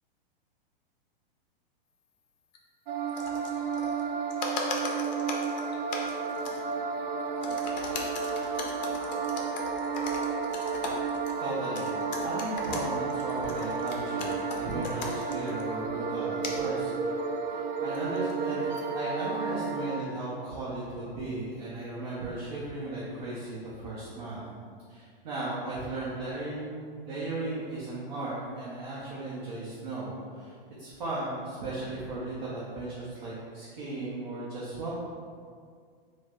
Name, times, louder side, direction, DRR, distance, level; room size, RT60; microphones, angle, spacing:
sound 1, 2.5-2.6 3.0-4.0 4.3-6.8 7.2-15.6 16.4-16.7 17.9-18.9, left 3 dB, 50° left, 0.4 m, -39 dB
sound 2, 2.9-20.0, right 5 dB, 90° right, 0.5 m, -32 dB
voice 1, 11.4-11.9 12.2-17.1 17.4-24.4 24.9-30.5 30.8-34.9, right 2 dB, 50° right, -7 dB, 0.7 m, -36 dB
3.1 x 2.1 x 3.5 m, 2.1 s
supercardioid pair, 175°, 29 cm